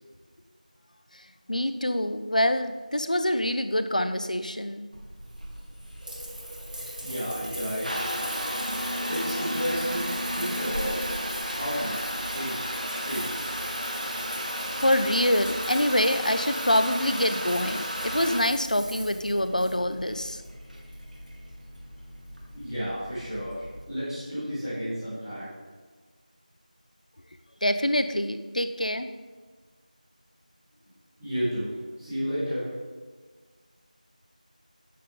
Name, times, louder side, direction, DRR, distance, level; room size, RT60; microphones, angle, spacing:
voice 1, 1.1-4.9 14.8-20.4 27.6-29.1, left 1 dB, 65° left, 9 dB, 1.0 m, -25 dB
Water tap faucet / Bathtub (filling or washing) / Trickle dribble, 4.9-23.8, equal, 75° right, 2.9 m, -33 dB
voice 2, 7.0-8.1 9.0-11.1 11.5-13.5 22.5-25.5 31.2-32.7, equal, ahead, -26 dB, 1.2 m, -32 dB
sound 1, 18.6-23.9, left 1 dB, 85° left, 1.5 m, -47 dB
13.0 x 9.9 x 3.9 m, 1.4 s
figure-of-eight pair, 180°, 5 cm